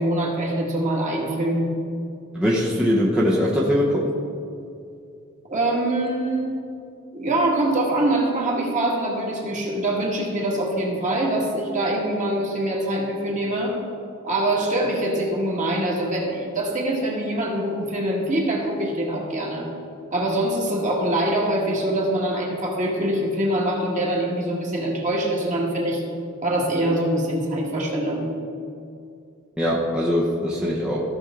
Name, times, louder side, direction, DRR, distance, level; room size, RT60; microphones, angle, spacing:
voice 1, 0.0-1.7 5.5-6.5 7.1-13.8 14.2-19.7 20.1-26.0 26.4-28.3, right 1 dB, 35° right, -3 dB, 1.9 m, -24 dB
voice 2, 2.3-4.1 29.6-31.0, equal, 5° right, -5 dB, 0.8 m, -21 dB
15.5 x 6.1 x 3.8 m, 2.5 s
head